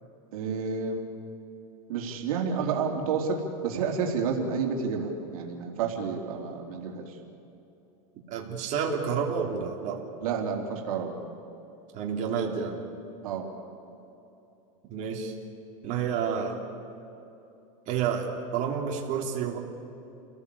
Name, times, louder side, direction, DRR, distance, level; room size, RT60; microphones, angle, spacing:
voice 1, 0.3-1.1 1.9-7.1 10.2-11.1 13.2-13.5, right 5 dB, 80° right, 1 dB, 3.6 m, -30 dB
voice 2, 8.3-10.0 11.9-12.8 14.9-15.3 15.8-16.6 17.9-19.6, right 7 dB, 45° right, 0 dB, 3.7 m, -29 dB
29.5 x 18.0 x 8.6 m, 2.9 s
supercardioid pair, 130°, 18 cm